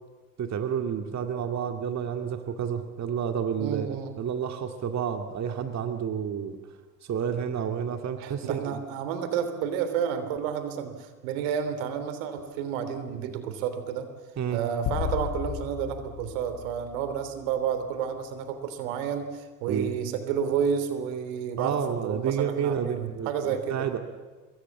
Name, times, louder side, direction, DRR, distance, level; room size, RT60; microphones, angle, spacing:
voice 1, 0.4-6.6 7.0-8.8 14.4-14.6 19.7-20.0 21.6-24.0, right 7 dB, 40° right, 6 dB, 2.4 m, -30 dB
voice 2, 3.6-4.1 8.2-14.1 14.5-23.9, right 8 dB, 75° right, 10 dB, 3.2 m, -30 dB
sound 1, 14.9-17.5, left 11 dB, 55° left, 2.3 m, -34 dB
26.5 x 23.0 x 7.3 m, 1.3 s
hypercardioid pair, 70°, 41 cm